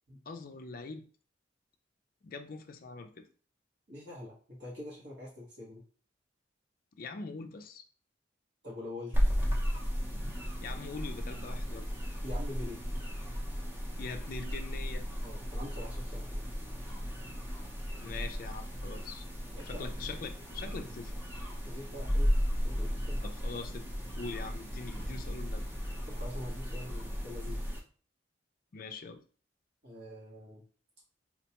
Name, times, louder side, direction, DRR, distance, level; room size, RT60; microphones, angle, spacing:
voice 1, 0.3-1.1 2.2-3.3 7.0-7.8 10.6-11.9 14.0-15.0 18.0-19.2 19.6-21.1 23.2-23.9 24.1-25.6 28.7-29.2, left 4 dB, 50° left, 6 dB, 0.4 m, -43 dB
voice 2, 3.9-5.8 8.6-9.2 12.2-12.8 15.2-16.5 19.5-19.8 21.6-22.3 22.6-23.2 26.1-27.8 29.8-30.6, left 1 dB, 60° right, -5 dB, 1.3 m, -44 dB
sound 1, 9.1-27.8, equal, 10° right, 0.6 m, -34 dB
4.3 x 2.2 x 2.9 m, 0.41 s
head